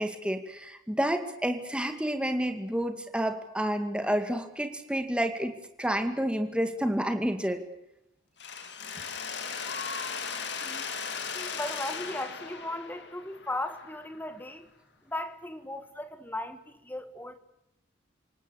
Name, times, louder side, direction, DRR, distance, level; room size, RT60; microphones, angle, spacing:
voice 1, 0.0-5.5 5.8-7.6, equal, 5° right, 2.3 m, -29 dB
Mechanisms, 8.4-14.3, left 5 dB, 60° left, 2.6 m, -37 dB
voice 2, 11.3-14.7 15.0-17.4, left 1 dB, 10° left, 1.7 m, -37 dB
28.5 x 18.5 x 8.2 m
head